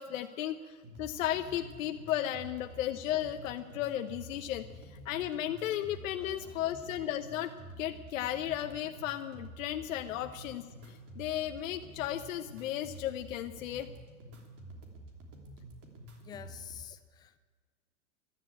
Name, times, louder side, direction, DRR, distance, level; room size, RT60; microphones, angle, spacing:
voice 1, 0.0-4.7 5.0-13.9, left 12 dB, 65° left, 6 dB, 1.0 m, -35 dB
sound 1, 0.8-16.8, right 1 dB, 30° right, 3.0 m, -50 dB
voice 2, 6.2-6.8 16.2-17.4, left 9 dB, 10° left, 10 dB, 0.4 m, -49 dB
14.0 x 12.0 x 8.4 m, 1.5 s
hypercardioid pair, 135°, 42 cm